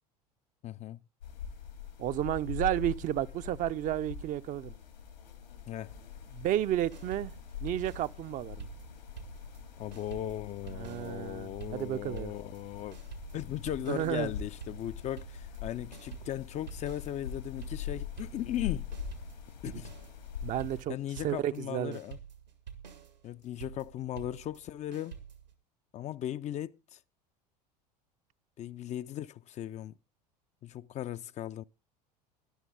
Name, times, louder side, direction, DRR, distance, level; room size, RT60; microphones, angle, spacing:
voice 1, 0.6-1.0 5.7-5.9 9.8-13.0 13.3-18.9 19.6-19.9 20.9-22.2 23.2-25.2 25.9-27.0 28.6-29.9 30.6-31.6, left 12 dB, 35° left, 0.5 m, -37 dB
sound 1, 1.2-20.8, left 8 dB, 85° left, 3.1 m, -43 dB
voice 2, 2.0-4.7 6.3-7.3 7.6-8.7 10.7-12.3 13.9-14.3 19.7-19.8 20.4-21.0 21.2-22.0, right 12 dB, 40° right, 0.6 m, -32 dB
sound 2, 6.9-9.6 9.9-25.5, right 7 dB, 85° right, 2.0 m, -48 dB
13.0 x 11.0 x 3.8 m
figure-of-eight pair, 75°, 21 cm